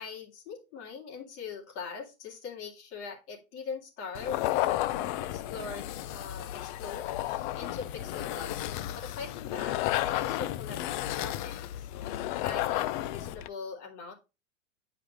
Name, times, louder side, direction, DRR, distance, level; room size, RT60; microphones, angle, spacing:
voice 1, 0.0-11.7 12.0-14.1, left 5 dB, 60° left, 0 dB, 2.6 m, -42 dB
sound 1, 4.1-13.5, left 14 dB, 40° left, 0.4 m, -32 dB
8.0 x 4.9 x 3.0 m, 0.27 s
hypercardioid pair, 115°, 39 cm